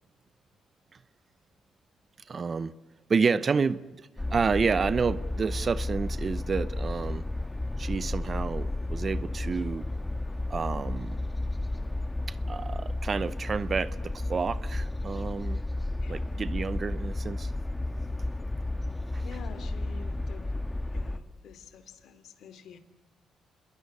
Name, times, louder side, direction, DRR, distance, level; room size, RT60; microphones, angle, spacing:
voice 1, 2.3-2.7 3.1-7.2 7.8-9.9 10.5-11.2 12.3-15.6 16.1-17.5 19.1-19.3, right 5 dB, 40° right, 0.8 m, -30 dB
sound 1, 4.2-21.2, left 2 dB, 15° left, 1.7 m, -32 dB
voice 2, 16.0-16.3 19.2-20.6 20.9-22.8, left 7 dB, 70° left, 2.8 m, -48 dB
27.5 x 22.0 x 8.5 m
cardioid pair, 90°, 0 cm